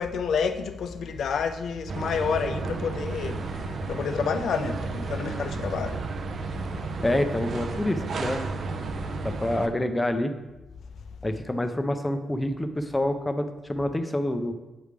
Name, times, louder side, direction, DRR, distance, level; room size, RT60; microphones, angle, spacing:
voice 1, 0.0-3.4 3.9-6.0, left 6 dB, 65° left, 0.5 m, -29 dB
sound 1, 1.9-9.7, right 4 dB, 50° right, 0.5 m, -33 dB
voice 2, 7.0-8.5 9.2-10.4 11.2-14.5, left 1 dB, 10° left, 0.5 m, -27 dB
7.7 x 3.3 x 5.0 m
wide cardioid pair, 145°, 0 cm